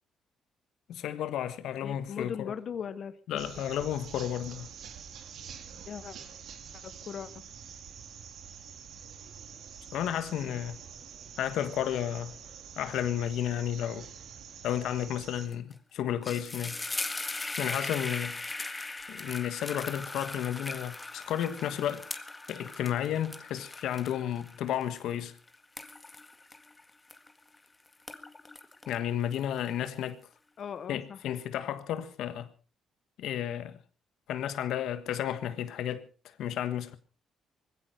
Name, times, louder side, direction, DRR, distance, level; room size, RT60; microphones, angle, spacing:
voice 1, 0.9-2.5 3.3-4.7 9.9-10.8 11.4-12.3 12.8-14.1 14.6-16.8 17.6-18.4 19.1-22.1 22.5-25.3 28.9-30.2 30.9-32.5 33.2-33.8 34.3-37.0, left 10 dB, 80° left, 1.4 m, -32 dB
voice 2, 1.8-3.2 5.9-6.2 6.8-7.4 10.5-10.6 30.6-31.2, left 7 dB, 55° left, 1.1 m, -39 dB
sound 1, 3.4-15.5, right 7 dB, 70° right, 2.8 m, -47 dB
sound 2, 15.5-15.7 16.0-27.6 27.9-29.9, left 2 dB, 20° left, 1.8 m, -39 dB
20.0 x 15.5 x 4.4 m
cardioid pair, 90°, 0 cm